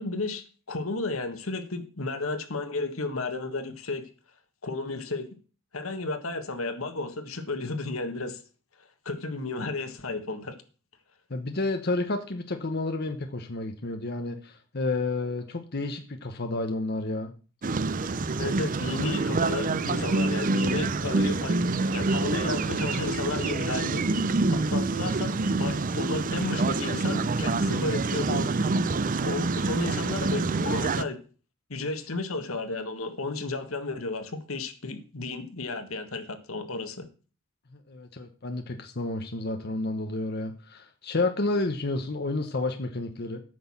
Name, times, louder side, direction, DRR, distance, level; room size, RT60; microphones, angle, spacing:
voice 1, 0.0-4.0 4.6-5.3 5.7-8.4 8.8-10.6 18.3-21.6 21.9-28.5 29.2-31.2 31.7-37.1, left 3 dB, 85° left, 9 dB, 1.5 m, -33 dB
voice 2, 11.3-17.3 37.7-43.4, left 2 dB, 50° left, 6 dB, 1.1 m, -30 dB
sound 1, 17.6-31.0, right 3 dB, 40° right, 0.5 m, -26 dB
9.3 x 6.3 x 7.2 m, 0.37 s
head